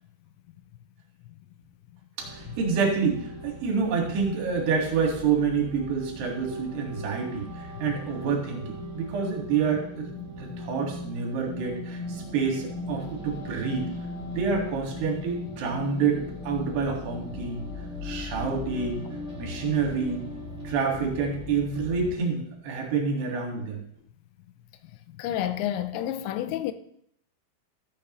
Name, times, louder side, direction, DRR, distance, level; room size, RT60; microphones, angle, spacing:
sound 1, 2.2-22.1, left 1 dB, 15° left, 1.5 m, -39 dB
voice 1, 2.2-10.1 10.4-13.9 14.2-17.6 18.0-19.0 19.4-20.2 20.6-23.8, right 5 dB, 70° right, 4.0 m, -28 dB
voice 2, 25.1-26.7, left 11 dB, 90° left, 2.9 m, -30 dB
13.5 x 8.7 x 3.1 m
omnidirectional pair, 5.2 m